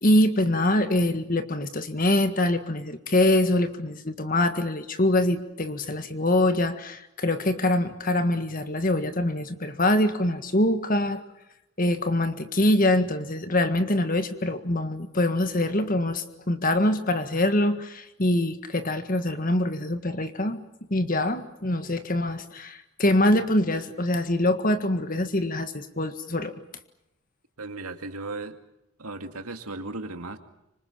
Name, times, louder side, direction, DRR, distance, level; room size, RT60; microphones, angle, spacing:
voice 1, 0.0-11.2 11.8-20.6 20.9-26.5, left 1 dB, 40° left, 9 dB, 1.7 m, -24 dB
voice 2, 27.6-28.6 29.0-30.4, right 2 dB, 85° right, 7 dB, 2.3 m, -36 dB
26.0 x 25.5 x 7.3 m, 0.87 s
head